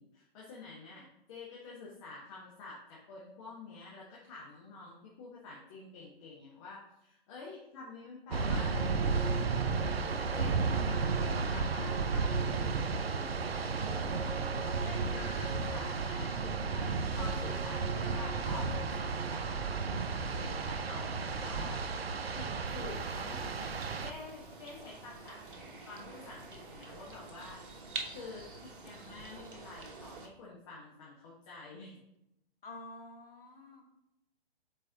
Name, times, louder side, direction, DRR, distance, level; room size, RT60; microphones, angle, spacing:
voice 1, 0.0-13.3 13.8-15.4 15.7-16.9 17.1-19.8 20.3-23.7 24.0-27.6 28.1-32.0, left 3 dB, 30° left, -5 dB, 1.3 m, -49 dB
sound 1, 8.3-24.1, right 4 dB, 80° right, 0.6 m, -33 dB
voice 2, 14.2-15.6 20.8-21.5 32.6-33.8, left 2 dB, 65° left, 2 dB, 1.6 m, -50 dB
sound 2, 22.7-30.3, right 3 dB, 55° right, 1.2 m, -47 dB
7.7 x 4.7 x 2.9 m, 0.86 s
figure-of-eight pair, 125°, 30 cm